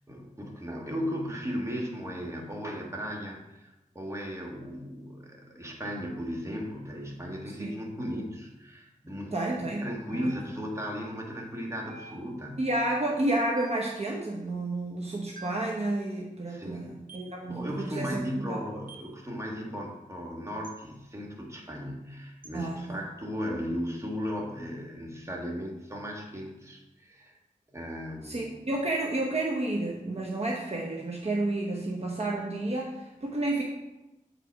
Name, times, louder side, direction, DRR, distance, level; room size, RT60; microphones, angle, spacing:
voice 1, 0.1-12.7 16.5-17.0 17.5-27.4 27.7-28.6, equal, 20° right, -1 dB, 1.7 m, -36 dB
voice 2, 9.3-9.8 10.1-10.3 12.6-18.6 22.5-22.8 28.2-33.6, right 2 dB, 50° right, -2 dB, 1.0 m, -31 dB
sound 1, 10.1-10.8 11.9-12.6 13.6-14.0 15.4-15.8 17.1-17.4 18.9-19.2 20.6-20.8 22.4-22.6, right 3 dB, 85° right, 0.8 m, -48 dB
7.8 x 5.1 x 4.6 m, 0.97 s
wide cardioid pair, 85°, 14 cm